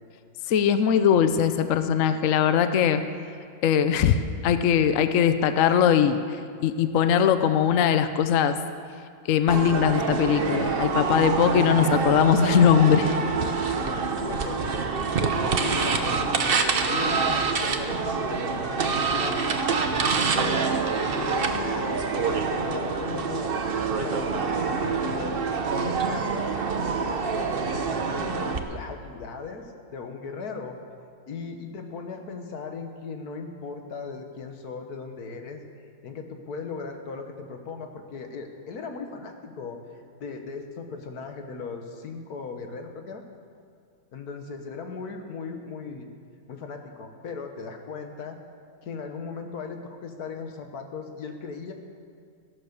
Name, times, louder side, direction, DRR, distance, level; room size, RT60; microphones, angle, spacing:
voice 1, 0.5-3.0 3.6-8.6 9.3-13.2, left 8 dB, 75° left, 10 dB, 0.7 m, -21 dB
sound 1, 9.5-28.6, right 4 dB, 50° right, 0.7 m, -26 dB
sound 2, 9.9-15.9, equal, 30° left, 3.0 m, -47 dB
voice 2, 11.7-12.0 13.9-14.7 15.2-16.6 16.9-20.8 21.2-22.0 22.5-23.5 23.9-26.5 27.6-30.8 31.3-35.6 36.0-39.8 40.2-43.2 44.1-46.1 46.5-48.4 48.8-51.7, left 4 dB, 55° left, 5 dB, 1.6 m, -38 dB
15.0 x 11.5 x 6.8 m, 2.2 s
omnidirectional pair, 2.1 m